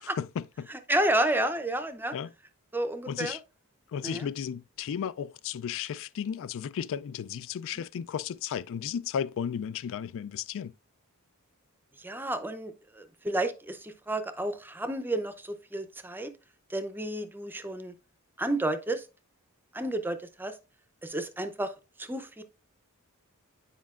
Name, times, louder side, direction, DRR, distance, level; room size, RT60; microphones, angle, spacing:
voice 1, 0.2-0.7 2.1-2.3 3.1-3.4 3.9-10.7, left 8 dB, 60° left, 0.3 m, -34 dB
voice 2, 0.7-2.1 2.7-3.4 4.0-4.3 12.0-16.3 16.7-17.9 18.4-19.0 19.7-20.5 21.0-21.7 22.0-22.4, right 1 dB, 10° right, 0.6 m, -31 dB
9.4 x 5.0 x 2.4 m
head